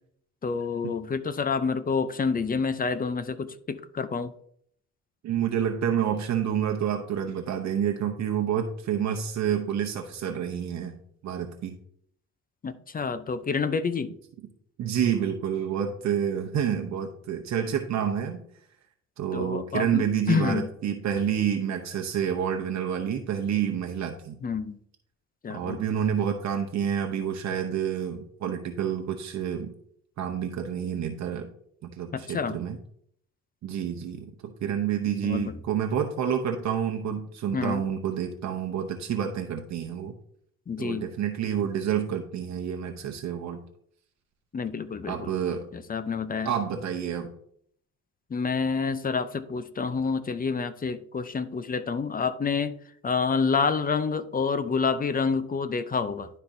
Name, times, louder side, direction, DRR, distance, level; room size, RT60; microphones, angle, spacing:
voice 1, 0.4-4.3 12.6-14.1 19.3-20.7 24.4-24.8 25.4-25.8 32.1-32.6 35.2-35.5 37.5-37.8 40.7-41.1 44.5-45.3 45.7-46.5 48.3-52.7 53.0-56.3, left 5 dB, 30° left, 13 dB, 0.6 m, -28 dB
voice 2, 5.2-10.9 11.2-11.8 14.8-18.4 19.2-24.4 25.5-29.7 30.2-31.5 31.8-32.8 33.6-40.2 40.8-43.6 45.1-45.7 46.4-47.3, right 8 dB, 65° right, 4 dB, 0.8 m, -28 dB
11.5 x 4.3 x 2.6 m, 0.66 s
cardioid pair, 90°, 30 cm